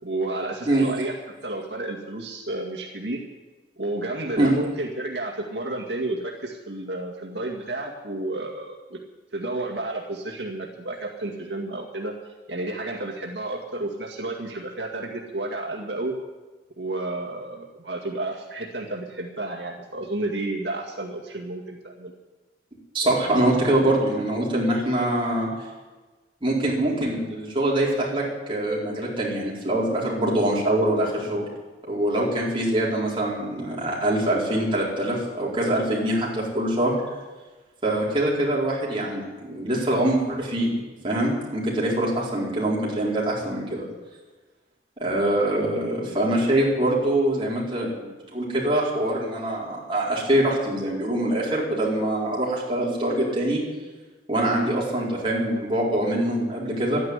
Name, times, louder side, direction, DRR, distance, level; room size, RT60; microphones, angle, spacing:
voice 1, 0.0-1.1 1.4-3.2 3.8-9.0 9.3-12.1 12.5-16.1 16.8-22.1, right 2 dB, 80° right, -1 dB, 2.1 m, -31 dB
voice 2, 22.9-25.5 26.4-31.5 31.8-37.0 37.8-40.7 41.0-43.8 45.0-53.6 54.3-57.0, right 1 dB, 30° right, -5 dB, 4.7 m, -24 dB
13.0 x 10.5 x 9.8 m, 1.2 s
head